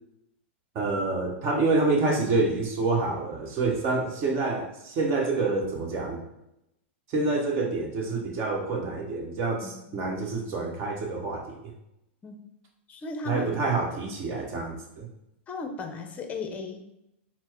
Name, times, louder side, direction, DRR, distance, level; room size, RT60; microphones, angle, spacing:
voice 1, 0.7-6.2 7.1-11.6 13.2-15.1, right 3 dB, 40° right, 0 dB, 1.2 m, -27 dB
voice 2, 9.6-10.0 12.2-12.4 12.9-13.5 15.5-16.9, left 3 dB, 20° left, 5 dB, 0.6 m, -36 dB
4.4 x 2.0 x 4.4 m, 0.85 s
hypercardioid pair, 125°, 7 cm